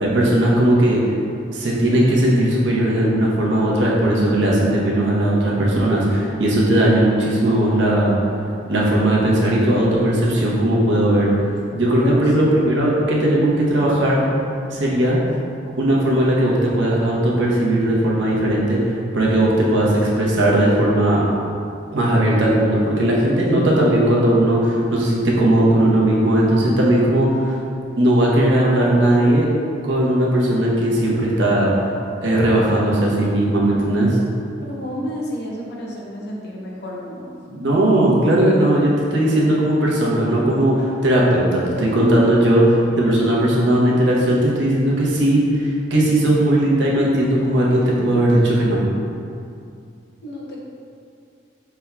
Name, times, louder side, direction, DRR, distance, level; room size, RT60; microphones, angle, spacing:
voice 1, 0.0-1.0 1.5-8.1 8.7-11.3 11.7-14.2 14.7-15.2 15.8-21.2 21.9-27.6 28.0-29.5 29.8-31.7 32.2-34.2 37.5-48.9, right 1 dB, 75° right, -4 dB, 0.8 m, -17 dB
voice 2, 12.0-12.4 34.6-37.3 50.2-50.7, equal, 60° left, -3 dB, 0.8 m, -31 dB
5.6 x 3.5 x 2.2 m, 2.5 s
head